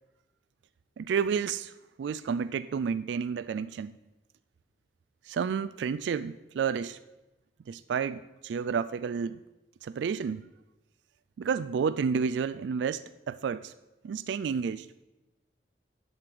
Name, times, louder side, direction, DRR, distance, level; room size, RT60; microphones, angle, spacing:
voice 1, 1.0-1.7 2.0-3.9 5.3-7.0 7.7-9.4 9.8-10.5 11.4-13.7 14.0-14.9, right 6 dB, 80° right, 15 dB, 0.3 m, -30 dB
11.0 x 7.8 x 4.8 m, 1.1 s
head